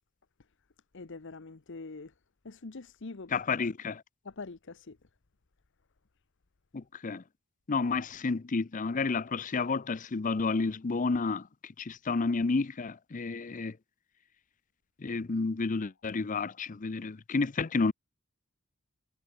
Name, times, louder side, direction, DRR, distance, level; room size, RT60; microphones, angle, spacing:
voice 1, 0.9-2.1 2.4-3.4 4.2-5.0, left 3 dB, 60° left, 0.9 m, -44 dB
voice 2, 3.3-4.0 6.7-7.2 7.7-13.8 15.0-17.9, left 4 dB, 35° left, 0.5 m, -31 dB
head